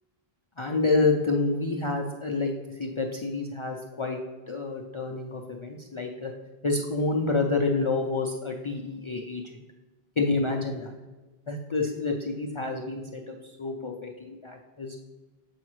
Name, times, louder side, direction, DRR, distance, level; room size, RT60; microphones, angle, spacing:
voice 1, 0.6-4.2 4.5-6.3 6.6-9.6 10.2-10.9 11.5-15.0, left 3 dB, 50° left, 0 dB, 0.4 m, -28 dB
7.2 x 4.8 x 3.1 m, 1.2 s
omnidirectional pair, 1.0 m